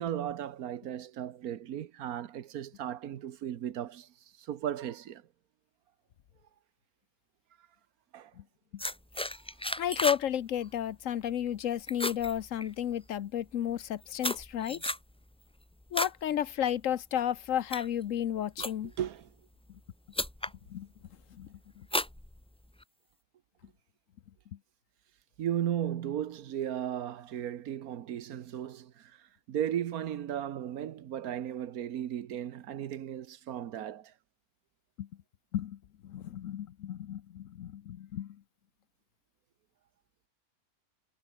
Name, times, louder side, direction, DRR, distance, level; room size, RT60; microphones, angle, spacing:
voice 1, 0.0-4.1 4.4-5.2 8.1-8.3 14.7-14.8 18.6-19.3 25.4-34.1, right 10 dB, 80° right, 1.4 m, -36 dB
sound 1, 8.8-10.3 10.6-10.9 11.3-11.6 11.9-13.1 13.7-16.2 16.6-16.9 17.5-19.1 19.8-19.9 20.1-20.6 21.0-21.4 21.9-22.8, left 1 dB, 5° left, 0.4 m, -34 dB
voice 2, 9.8-14.8 15.9-18.9 20.7-20.9 21.4-21.5 35.0-35.1 35.5-35.8 36.0-38.4, left 10 dB, 65° left, 1.1 m, -32 dB
omnidirectional pair, 1.5 m